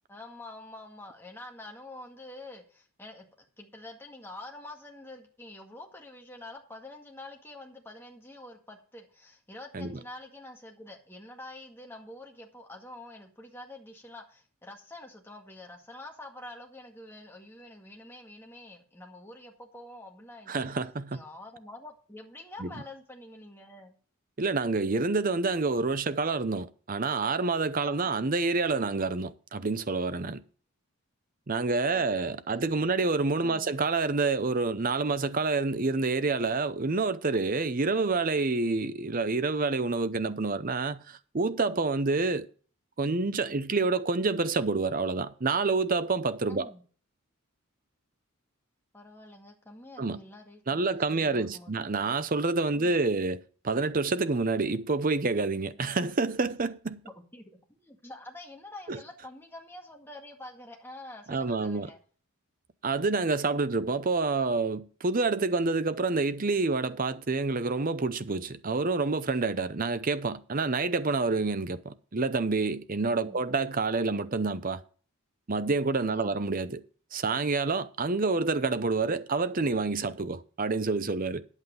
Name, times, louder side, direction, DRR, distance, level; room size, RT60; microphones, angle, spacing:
voice 1, 0.1-3.3 3.6-20.7 21.1-24.0 27.8-28.2 31.6-32.9 33.4-33.7 46.5-46.8 48.9-51.9 52.7-53.0 57.0-62.0 63.7-64.0 73.2-73.5 76.1-76.4, left 1 dB, 10° left, 1.9 m, -47 dB
voice 2, 20.5-21.2 22.6-22.7 24.4-30.4 31.5-42.5 43.0-46.7 50.0-50.2 50.7-57.0 58.9-59.0 61.3-61.9 62.8-74.8 75.5-76.8 77.1-81.5, right 3 dB, 40° right, 0.7 m, -28 dB
9.7 x 8.2 x 5.3 m
head